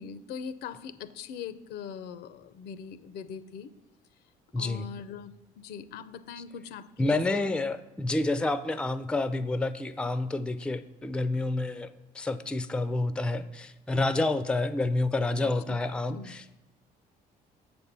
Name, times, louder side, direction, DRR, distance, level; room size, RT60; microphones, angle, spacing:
voice 1, 0.0-3.7 4.6-7.5 15.4-15.8 16.1-16.3, left 7 dB, 75° left, 13 dB, 0.6 m, -41 dB
voice 2, 4.5-4.9 7.0-11.9 12.1-16.6, left 2 dB, 5° left, 12 dB, 0.4 m, -29 dB
6.9 x 4.3 x 6.7 m, 1.1 s
cardioid pair, 110°, 17 cm